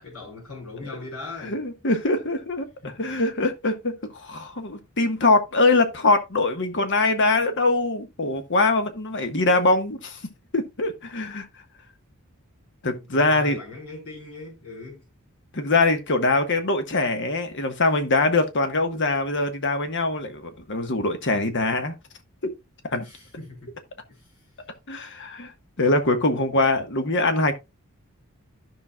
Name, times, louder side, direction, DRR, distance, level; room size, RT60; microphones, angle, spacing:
voice 1, 0.0-1.6 2.8-3.0 12.9-15.0 23.0-23.8 24.1-24.5, left 3 dB, 80° left, 5.4 m, -40 dB
voice 2, 1.4-2.7 3.0-10.2 10.5-11.5 12.8-13.6 15.5-21.9 22.4-22.5 22.9-23.0 24.9-25.5 25.8-27.5, left 2 dB, 55° left, 1.4 m, -23 dB
14.0 x 6.0 x 2.3 m
head